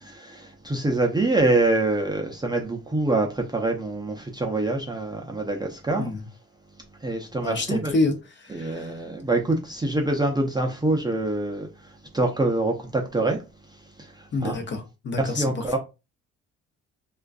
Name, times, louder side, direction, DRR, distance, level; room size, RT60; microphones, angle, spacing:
voice 1, 0.1-6.1 7.0-7.9 8.5-13.4 13.7-14.6 15.2-15.8, right 2 dB, 15° right, 0.4 m, -25 dB
voice 2, 7.4-8.1 8.4-9.0 14.3-15.8, left 2 dB, 40° left, 0.6 m, -28 dB
2.4 x 2.2 x 2.3 m
cardioid pair, 90°, 30 cm